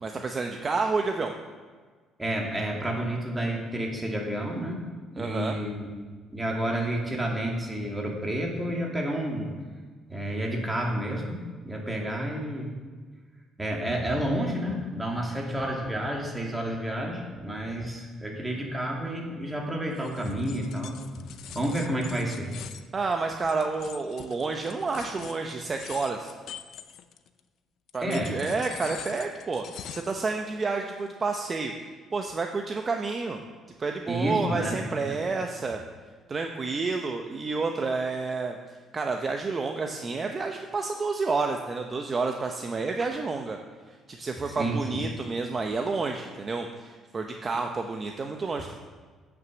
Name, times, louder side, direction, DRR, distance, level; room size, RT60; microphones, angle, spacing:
voice 1, 0.0-1.3 5.2-5.6 22.9-26.3 27.9-33.4 33.8-35.8 36.3-38.6 38.9-43.6 44.1-48.8, right 4 dB, 35° right, 4 dB, 0.8 m, -30 dB
voice 2, 2.2-4.8 5.2-5.9 6.3-9.5 10.1-12.7 13.6-21.2 21.5-22.5 28.0-28.4 34.1-35.2 43.0-43.1 44.5-45.0, right 1 dB, 15° right, -1 dB, 2.4 m, -30 dB
sound 1, 19.9-27.4 27.9-30.2, left 9 dB, 70° left, 0.6 m, -44 dB
9.1 x 6.2 x 7.0 m, 1.5 s
cardioid pair, 85°, 0 cm